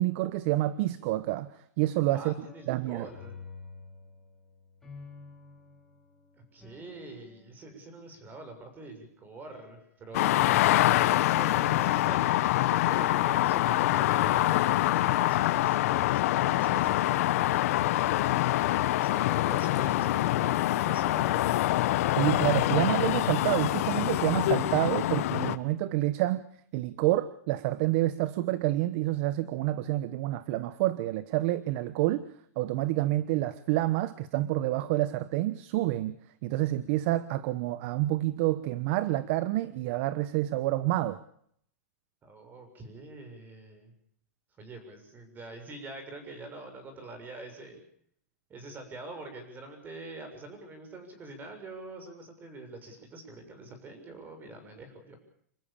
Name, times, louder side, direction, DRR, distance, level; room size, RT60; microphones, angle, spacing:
voice 1, 0.0-2.3 2.7-3.1 22.2-26.5 26.7-32.3 32.6-36.2 36.4-41.2, right 16 dB, 50° right, 15 dB, 1.1 m, -28 dB
voice 2, 2.1-3.4 6.3-10.7 11.0-17.7 18.5-21.4 42.2-43.9 44.6-47.8 48.5-55.2, right 2 dB, 20° right, 7 dB, 6.8 m, -45 dB
sound 1, 2.5-8.4 9.5-9.8 10.4-13.3 13.9-16.2, left 6 dB, 5° left, 5.0 m, -49 dB
sound 2, 10.1-25.6, left 15 dB, 60° left, 1.1 m, -25 dB
27.5 x 14.0 x 8.7 m, 0.67 s
hypercardioid pair, 140°, 9 cm